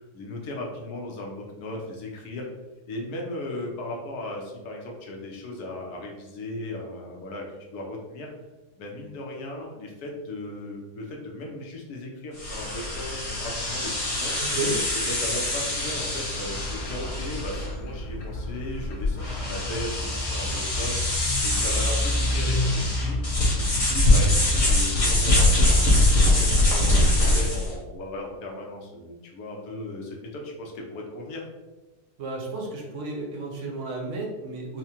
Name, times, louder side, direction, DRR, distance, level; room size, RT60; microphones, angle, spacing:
voice 1, 0.1-2.5 2.9-8.3 8.8-14.3 14.9-23.2 23.5-31.4, left 1 dB, 75° left, 0 dB, 1.2 m, -36 dB
sound 1, 12.4-27.7, left 1 dB, 30° left, 0.6 m, -23 dB
sound 2, 16.4-24.4, left 1 dB, 50° left, 0.9 m, -31 dB
voice 2, 32.2-34.8, right 2 dB, 60° right, 0 dB, 0.9 m, -32 dB
4.6 x 2.1 x 2.8 m, 1.1 s
omnidirectional pair, 1.7 m